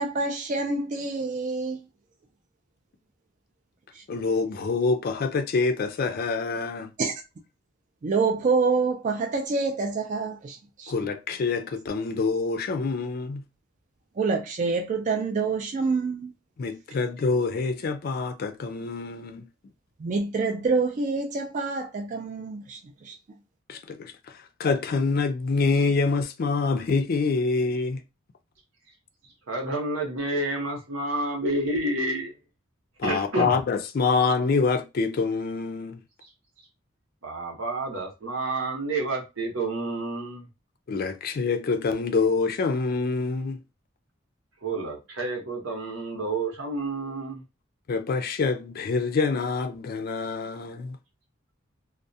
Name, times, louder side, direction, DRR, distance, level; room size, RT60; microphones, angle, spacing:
voice 1, 0.0-1.8 3.9-4.0 7.0-7.1 8.0-10.9 14.2-16.3 20.0-23.2, right 4 dB, 40° right, 0.3 m, -27 dB
voice 2, 4.1-6.9 10.9-13.4 16.6-19.4 23.7-28.0 33.0-36.0 40.9-43.6 47.9-51.0, left 4 dB, 45° left, 0.3 m, -26 dB
voice 3, 29.5-32.3 33.0-33.6 37.2-40.4 44.6-47.4, right 2 dB, 80° right, 0.9 m, -29 dB
2.3 x 2.0 x 2.6 m
head